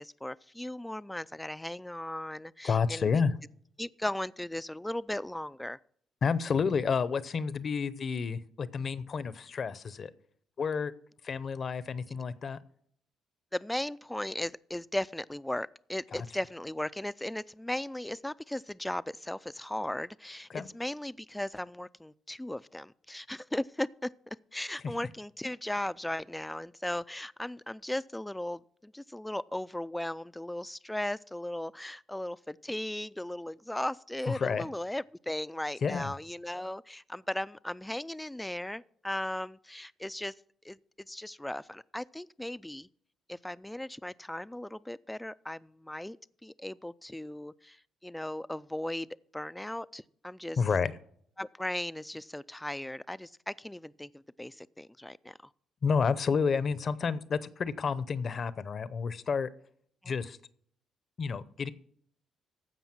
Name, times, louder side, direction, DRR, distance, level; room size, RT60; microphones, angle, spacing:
voice 1, 0.0-3.3 3.8-5.8 13.5-40.3 40.6-40.8 41.1-42.9 43.3-46.2 46.4-47.8 48.0-49.1 49.3-50.6 51.4-55.4 60.0-60.1, left 1 dB, 5° left, 0.3 m, -37 dB
voice 2, 2.6-3.3 6.2-10.1 10.6-10.9 11.2-12.6 16.1-16.2 20.5-20.7 34.3-34.7 35.8-36.1 50.6-50.9 55.8-59.5 60.1-60.4 61.2-61.7, left 5 dB, 50° left, 0.7 m, -30 dB
15.0 x 5.5 x 5.9 m
cardioid pair, 90°, 0 cm